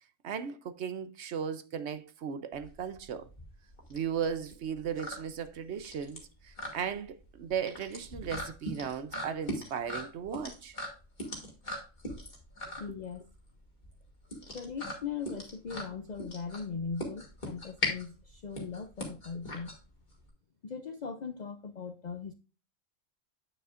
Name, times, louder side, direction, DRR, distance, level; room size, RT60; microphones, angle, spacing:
voice 1, 0.2-3.3 3.9-10.8 12.9-13.0, right 7 dB, 60° right, 0.9 m, -36 dB
sound 1, 2.5-20.3, left 1 dB, 35° left, 2.4 m, -40 dB
voice 2, 12.8-13.3 14.5-19.7 20.6-22.3, left 5 dB, 55° left, 0.5 m, -39 dB
8.9 x 6.8 x 2.5 m
omnidirectional pair, 1.3 m